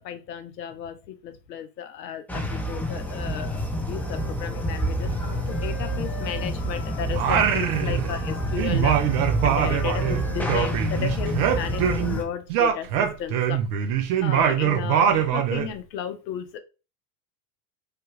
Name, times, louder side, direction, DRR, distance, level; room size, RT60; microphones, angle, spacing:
voice 1, 0.0-13.6 14.2-16.6, left 9 dB, 80° left, 9 dB, 0.7 m, -34 dB
sound 1, 2.3-12.2, equal, 5° left, 0.6 m, -28 dB
Wind instrument woodwind instrument, 3.8-7.9 8.1-12.3, left 7 dB, 60° left, 1.1 m, -44 dB
Singing, 7.1-8.3 8.6-12.2 12.5-15.7, right 9 dB, 65° right, 0.7 m, -23 dB
3.3 x 2.3 x 2.9 m, 0.32 s
hypercardioid pair, 80°, 50 cm